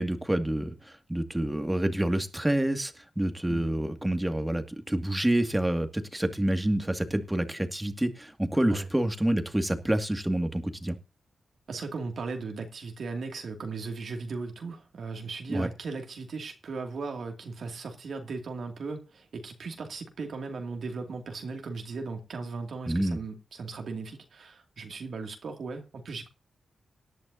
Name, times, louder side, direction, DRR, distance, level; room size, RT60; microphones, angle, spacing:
voice 1, 0.0-11.0 15.5-15.7 22.9-23.2, right 1 dB, 10° right, 2.2 m, -28 dB
voice 2, 11.7-26.3, right 4 dB, 70° right, 2.5 m, -37 dB
18.0 x 11.0 x 2.8 m
cardioid pair, 50°, 0 cm